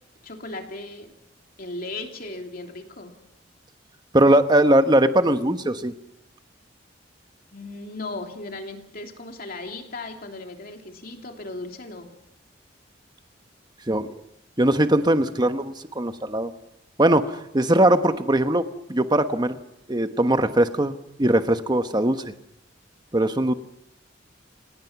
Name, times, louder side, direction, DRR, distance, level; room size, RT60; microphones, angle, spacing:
voice 1, 0.2-1.1 1.6-3.1 7.5-12.1, left 2 dB, 50° left, 3 dB, 3.0 m, -36 dB
voice 2, 4.1-5.9 13.9-14.1 14.6-16.5 17.0-19.6 19.9-22.2 23.1-23.5, right 1 dB, 25° right, 9 dB, 1.1 m, -20 dB
28.5 x 18.5 x 6.0 m, 0.80 s
head